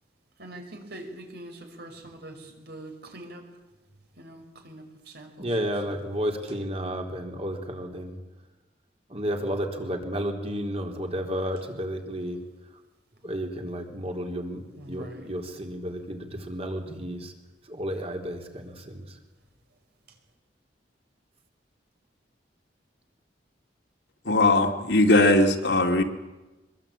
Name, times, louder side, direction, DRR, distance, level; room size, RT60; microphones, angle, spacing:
voice 1, 0.4-3.4 4.2-5.7 14.8-15.3, right 1 dB, 65° right, 4 dB, 5.4 m, -43 dB
voice 2, 5.4-8.1 9.1-12.4 13.2-14.6 14.9-17.3 17.7-19.0, equal, 35° right, 3 dB, 3.8 m, -32 dB
voice 3, 24.3-26.0, left 2 dB, 70° left, 4 dB, 2.7 m, -19 dB
24.5 x 22.0 x 8.9 m, 1.1 s
head